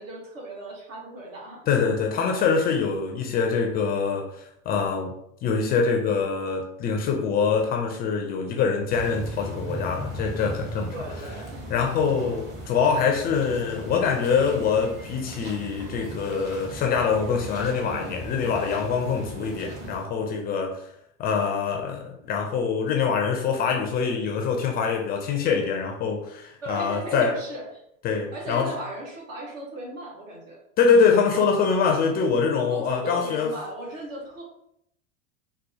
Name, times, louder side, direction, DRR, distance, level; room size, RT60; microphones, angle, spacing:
voice 1, 0.0-1.6 10.9-11.7 26.6-27.6 28.3-30.6 32.7-34.4, right 1 dB, 75° right, -2 dB, 1.4 m, -36 dB
voice 2, 1.7-5.2 5.4-10.9 11.7-20.8 21.2-27.4 28.0-28.7 30.8-33.5, left 5 dB, 25° left, 2 dB, 0.3 m, -24 dB
sound 1, 8.9-20.0, right 1 dB, 25° right, 0.8 m, -38 dB
4.2 x 2.1 x 2.7 m, 0.74 s
hypercardioid pair, 95°, 39 cm